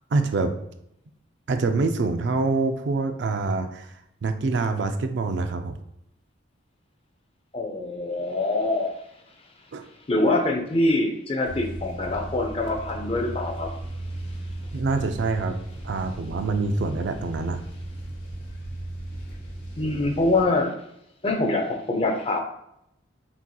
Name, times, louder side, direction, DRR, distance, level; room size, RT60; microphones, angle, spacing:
voice 1, 0.1-0.5 1.5-3.9 4.2-5.8 9.7-9.9 14.7-15.6 15.8-17.6, right 3 dB, 65° right, 7 dB, 0.4 m, -25 dB
voice 2, 7.5-8.9 10.1-13.7 19.8-20.7 21.2-22.4, left 2 dB, 30° left, 3 dB, 0.5 m, -24 dB
sound 1, 11.4-20.5, right 1 dB, 65° left, 1.0 m, -36 dB
6.1 x 2.8 x 2.3 m, 0.78 s
head